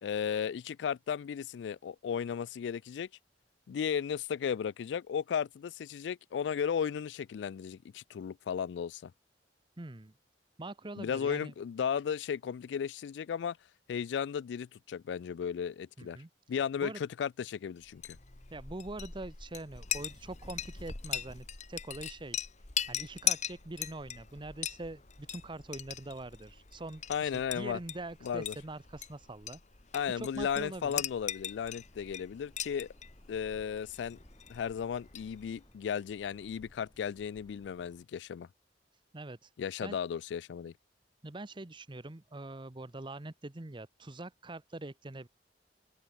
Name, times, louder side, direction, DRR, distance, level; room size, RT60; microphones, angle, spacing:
voice 1, 0.0-3.1 3.7-9.1 11.0-13.6 13.9-16.2 16.5-18.2 27.1-27.8 28.2-28.5 29.9-32.9 33.3-34.2 34.5-38.5 39.6-40.7, left 7 dB, 75° left, 0.3 m, -35 dB
voice 2, 9.8-10.1 10.6-11.5 16.0-17.0 18.5-22.4 22.9-29.6 30.1-31.0 39.1-39.5 39.8-40.0 41.2-45.3, right 2 dB, 25° right, 0.9 m, -44 dB
Chink clink, 17.9-35.7, left 9 dB, 40° left, 1.6 m, -40 dB
sound 1, 31.4-38.0, equal, 20° left, 2.3 m, -62 dB
open air
head